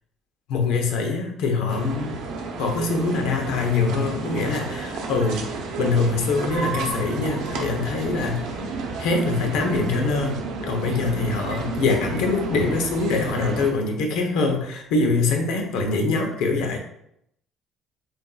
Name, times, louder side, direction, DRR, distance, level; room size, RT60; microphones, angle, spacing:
voice 1, 0.5-2.1 2.6-5.5 5.8-8.4 9.0-10.4 10.7-16.8, left 3 dB, 80° left, 3 dB, 0.9 m, -24 dB
sound 1, 1.7-13.7, right 3 dB, 75° right, 0.8 m, -31 dB
7.7 x 2.6 x 2.3 m, 0.75 s
cardioid pair, 150°, 0 cm